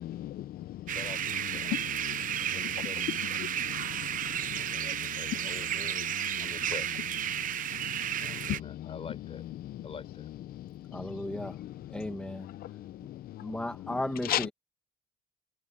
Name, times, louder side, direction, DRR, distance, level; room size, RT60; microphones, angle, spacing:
voice 1, 0.0-1.0 1.6-2.2 2.7-5.5 6.0-6.1 6.3-6.5 7.3-8.9 9.6-9.8 10.5-13.6 14.2-14.5, left 13 dB, 60° left, 0.6 m, -38 dB
voice 2, 0.9-1.8 2.1-3.1 4.3-6.0 6.4-7.0 8.1-9.4 9.8-10.3, left 6 dB, 35° left, 4.6 m, -46 dB
sound 1, 0.9-8.6, right 10 dB, 50° right, 0.9 m, -33 dB
voice 3, 10.9-11.6 11.9-12.5 13.4-14.5, left 1 dB, 5° left, 1.9 m, -35 dB
cardioid pair, 110°, 17 cm